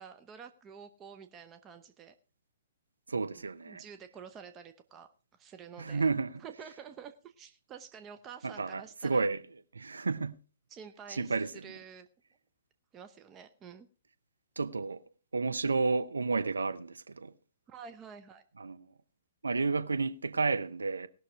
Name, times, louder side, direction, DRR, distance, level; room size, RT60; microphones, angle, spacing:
voice 1, 0.0-2.1 3.4-6.1 6.4-9.3 10.7-11.4 11.6-12.1 12.9-13.9 17.7-18.4, right 7 dB, 20° right, 0.8 m, -49 dB
voice 2, 3.1-3.8 5.8-6.4 8.4-9.4 9.7-10.4 11.1-11.7 14.6-15.0 15.3-17.3 18.6-18.9 19.4-21.1, right 4 dB, 80° right, 0.8 m, -31 dB
18.5 x 6.4 x 4.7 m
figure-of-eight pair, 120°, 0 cm